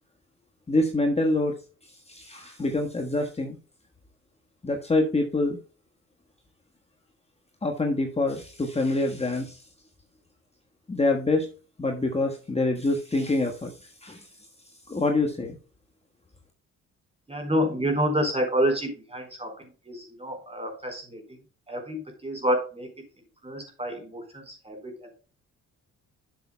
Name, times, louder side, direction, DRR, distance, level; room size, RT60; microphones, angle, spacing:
voice 1, 0.7-1.6 2.1-3.6 4.6-5.6 7.6-9.6 10.9-11.5 11.8-14.3 14.9-15.6, left 2 dB, 20° left, 2 dB, 1.4 m, -26 dB
voice 2, 17.3-21.4 21.7-22.9 23.4-25.1, equal, 20° right, 4 dB, 4.4 m, -29 dB
11.0 x 7.1 x 2.2 m, 0.35 s
cardioid pair, 90°, 30 cm